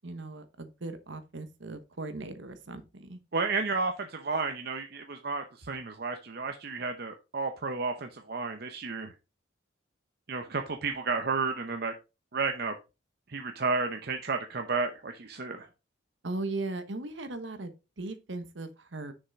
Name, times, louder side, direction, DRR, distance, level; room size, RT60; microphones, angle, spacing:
voice 1, 0.0-3.2 16.2-19.1, right 2 dB, 70° right, 1.1 m, -38 dB
voice 2, 3.3-9.1 10.3-11.9 12.3-12.7 13.3-15.7, right 4 dB, 50° right, 0.7 m, -32 dB
6.6 x 5.7 x 4.0 m
head